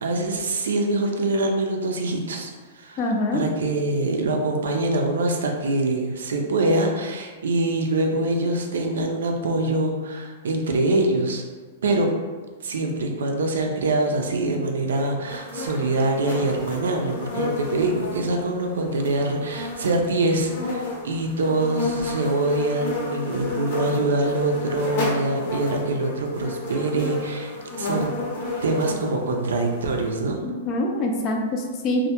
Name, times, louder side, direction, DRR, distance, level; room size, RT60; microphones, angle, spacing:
voice 1, 0.0-11.4 11.8-12.1 12.6-28.1 28.6-30.4, right 2 dB, 85° right, 2 dB, 0.4 m, -24 dB
voice 2, 3.0-3.4 30.4-32.1, left 1 dB, 35° left, 1 dB, 0.4 m, -25 dB
sound 1, 15.3-30.1, left 2 dB, 60° left, 0.8 m, -32 dB
2.1 x 2.1 x 2.8 m, 1.4 s
hypercardioid pair, 135°, 0 cm